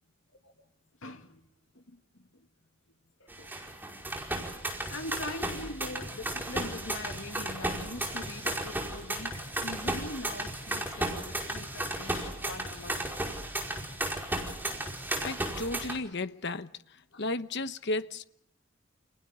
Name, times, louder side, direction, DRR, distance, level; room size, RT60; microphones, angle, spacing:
voice 1, 1.0-1.4 1.7-2.5 3.2-3.5 4.9-13.2 17.1-17.2, left 2 dB, 80° left, 2.5 m, -42 dB
sound 1, 3.3-16.0, right 1 dB, 10° right, 5.1 m, -34 dB
voice 2, 15.2-16.7 17.2-18.2, left 2 dB, 60° left, 1.1 m, -33 dB
29.5 x 29.5 x 3.8 m
head